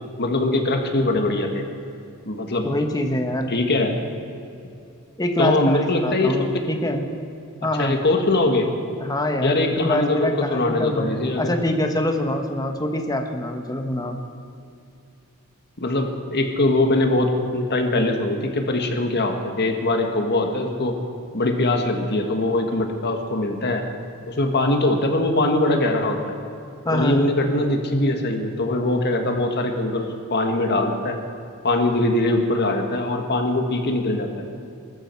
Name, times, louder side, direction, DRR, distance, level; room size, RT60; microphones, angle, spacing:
voice 1, 0.2-1.6 2.3-2.7 3.5-4.0 5.4-6.5 7.8-8.7 9.4-11.6 15.8-20.9 21.3-23.8 24.3-26.3 26.9-31.2 31.6-34.3, left 2 dB, 50° left, 4 dB, 1.6 m, -22 dB
voice 2, 2.6-3.5 5.2-7.0 7.6-8.0 9.0-14.2 26.8-27.2, left 1 dB, 15° left, 4 dB, 1.2 m, -25 dB
21.5 x 13.0 x 4.6 m, 2.6 s
head